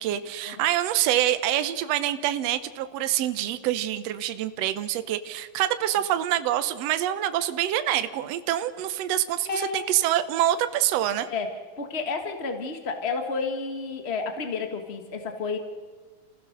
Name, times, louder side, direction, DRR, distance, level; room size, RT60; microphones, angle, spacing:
voice 1, 0.0-11.3, right 12 dB, 75° right, 11 dB, 1.5 m, -26 dB
voice 2, 9.4-9.9 11.3-15.6, left 4 dB, 65° left, 6 dB, 0.6 m, -31 dB
29.0 x 15.5 x 6.6 m, 1.4 s
omnidirectional pair, 4.0 m